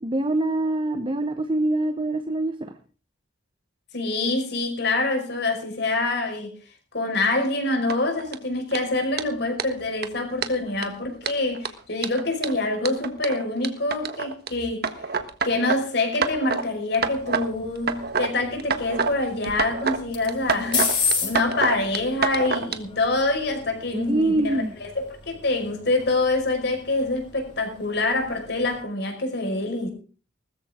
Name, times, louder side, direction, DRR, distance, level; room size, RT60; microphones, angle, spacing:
voice 1, 0.0-2.7 23.9-24.7, right 2 dB, 30° right, 1.1 m, -24 dB
voice 2, 3.9-6.5 6.9-15.0 15.4-29.9, left 2 dB, 60° left, 5.4 m, -26 dB
sound 1, 7.9-8.3 8.7-8.8 9.2-9.3 9.6-9.7 10.0-10.1 10.4-10.8 11.2-14.5 14.8-15.8 16.1-16.6 16.9-17.5 17.8-18.3 18.6-19.1 19.4-20.0 20.3-22.8, right 5 dB, 55° right, 1.5 m, -27 dB
sound 2, 16.9-28.8, left 5 dB, 25° left, 6.3 m, -34 dB
19.5 x 14.0 x 3.8 m
head